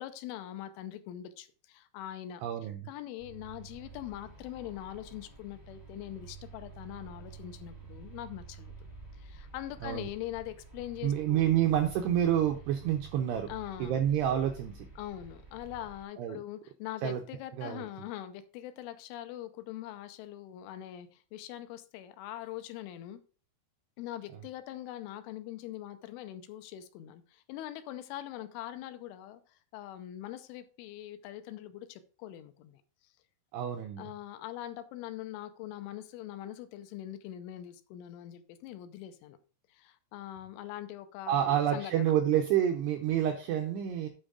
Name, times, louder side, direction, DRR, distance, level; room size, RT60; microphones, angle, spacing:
voice 1, 0.0-2.4 2.9-8.8 9.1-11.5 13.5-14.0 15.0-23.2 24.0-32.8 34.0-39.4 39.7-42.1, left 12 dB, 85° left, 10 dB, 3.1 m, -42 dB
voice 2, 2.4-2.9 9.8-10.1 11.0-13.5 13.8-14.9 16.2-16.4 17.0-17.2 17.6-17.8 33.5-34.1 41.3-44.1, right 10 dB, 90° right, 5 dB, 2.4 m, -28 dB
sound 1, 3.2-16.0, right 5 dB, 25° left, 0.4 m, -50 dB
8.9 x 5.4 x 5.0 m, 0.38 s
omnidirectional pair, 5.8 m